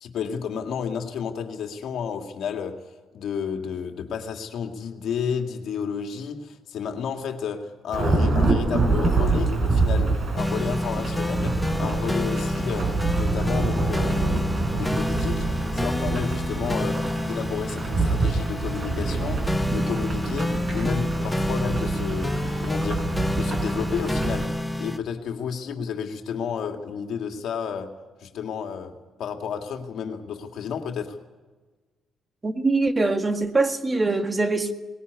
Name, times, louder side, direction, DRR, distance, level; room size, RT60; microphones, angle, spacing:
voice 1, 0.0-2.9 3.1-23.0 23.3-24.5 24.8-27.9 28.2-28.9 29.2-31.2, left 7 dB, 75° left, 2.2 m, -31 dB
Thunderstorm / Rain, 7.9-24.5, right 3 dB, 45° right, 5.0 m, -26 dB
sound 1, 10.4-25.0, left 1 dB, 10° left, 0.7 m, -28 dB
voice 2, 32.4-34.7, right 3 dB, 25° right, 1.7 m, -23 dB
20.0 x 17.5 x 9.6 m
cardioid pair, 90°, 0 cm